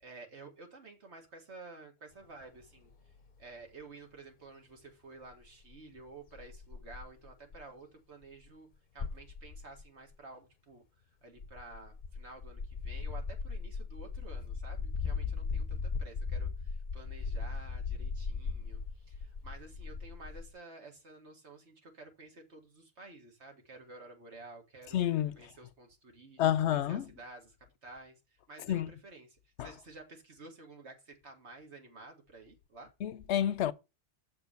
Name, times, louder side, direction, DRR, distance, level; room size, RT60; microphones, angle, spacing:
voice 1, 0.0-3.1 3.4-8.7 8.9-10.8 11.2-25.0 25.4-27.6 27.8-32.9, right 3 dB, 70° right, 2.1 m, -52 dB
sound 1, 2.6-2.7 2.9-3.0 3.4-3.5 5.3-5.4 5.7-5.8 6.0-6.1 6.4-7.6 8.4-8.5 9.0-9.8 11.4-20.5, left 4 dB, 45° left, 0.7 m, -38 dB
voice 2, 24.9-25.4 26.4-27.1 28.7-28.9 29.6-29.7 33.0-33.7, left 11 dB, 75° left, 0.9 m, -29 dB
7.1 x 4.5 x 6.9 m
omnidirectional pair, 1.2 m